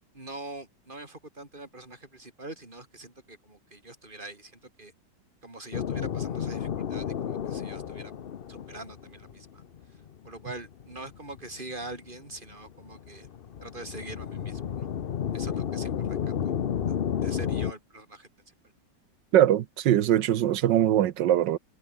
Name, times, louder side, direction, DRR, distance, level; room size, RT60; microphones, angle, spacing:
voice 1, 0.1-4.9 5.4-8.1 8.5-9.6 9.9-13.3 13.6-14.9 15.3-16.5 16.9-18.3, right 2 dB, 25° right, 5.2 m, -44 dB
sound 1, 5.7-17.7, left 8 dB, 55° left, 0.6 m, -32 dB
voice 2, 19.3-21.6, right 11 dB, 80° right, 1.5 m, -22 dB
omnidirectional pair, 1.9 m